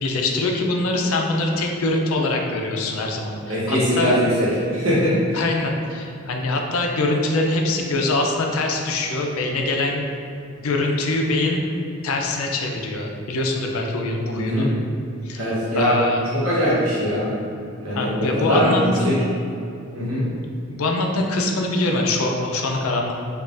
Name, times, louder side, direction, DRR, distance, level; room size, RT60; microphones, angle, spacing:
voice 1, 0.0-4.2 5.3-10.1 10.6-11.7 12.0-14.7 15.2-16.2 17.9-19.2 20.7-23.1, left 2 dB, 90° left, 1 dB, 0.5 m, -23 dB
voice 2, 3.5-5.4 14.4-14.7 15.4-16.0 16.3-17.3 17.8-19.1 19.9-20.2, equal, 70° right, -8 dB, 1.2 m, -21 dB
5.2 x 2.4 x 2.5 m, 2.6 s
head